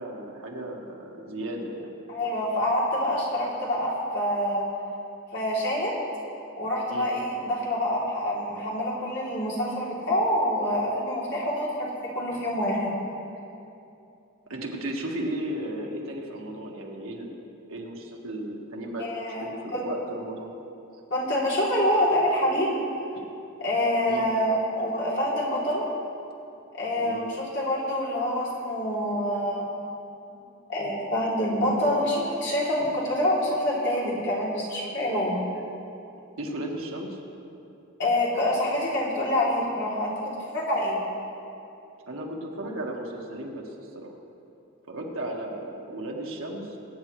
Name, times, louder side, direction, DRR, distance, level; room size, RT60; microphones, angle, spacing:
voice 1, 0.0-1.9 6.9-7.1 14.5-17.3 17.7-19.1 19.4-20.5 20.9-21.0 23.1-23.2 24.1-24.3 27.0-27.3 36.4-37.2 42.1-44.1 44.9-46.8, right 1 dB, 75° right, 0 dB, 1.6 m, -35 dB
voice 2, 2.1-4.6 5.3-5.9 6.5-11.9 12.1-12.9 19.0-19.8 21.1-22.8 23.6-25.9 26.7-29.6 30.7-35.4 38.0-41.0, left 1 dB, 55° left, -6 dB, 3.1 m, -26 dB
22.0 x 9.1 x 3.2 m, 2.7 s
head